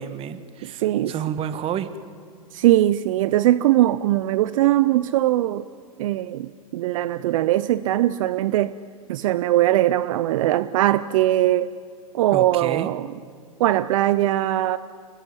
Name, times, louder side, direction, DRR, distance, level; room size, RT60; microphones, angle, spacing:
voice 1, 0.0-1.9 12.3-12.9, right 10 dB, 30° right, 12 dB, 1.6 m, -30 dB
voice 2, 0.6-1.1 2.5-5.7 6.0-8.7 9.1-11.7 12.1-13.1 13.6-14.8, right 14 dB, 60° right, 16 dB, 0.7 m, -20 dB
26.5 x 21.0 x 9.9 m, 2.1 s
hypercardioid pair, 120°, 19 cm